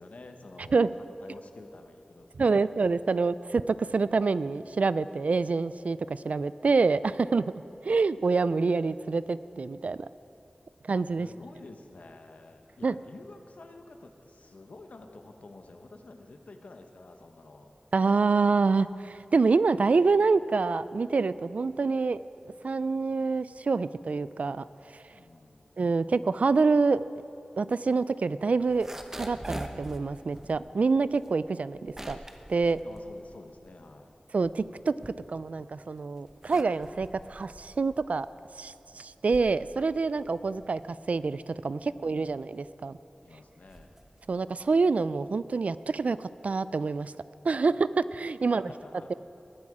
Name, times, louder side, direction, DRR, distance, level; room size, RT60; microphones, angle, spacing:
voice 1, 0.0-2.7 11.2-17.7 25.1-25.7 32.8-34.1 43.2-43.9 48.4-49.1, left 2 dB, 75° left, 5 dB, 1.0 m, -50 dB
voice 2, 2.4-10.1 10.8-11.3 12.8-13.0 17.9-22.2 22.6-24.6 24.9-25.0 25.8-27.0 27.6-28.9 29.2-32.2 32.5-32.8 34.3-38.3 38.6-40.8 41.1-43.0 44.3-47.1 47.4-48.7, right 4 dB, 70° right, 16 dB, 0.3 m, -26 dB
sound 1, 28.6-33.9 34.2-35.7 36.1-44.9, right 1 dB, 20° right, 0.9 m, -45 dB
20.0 x 8.5 x 4.9 m, 2.8 s
wide cardioid pair, 65°, 2 cm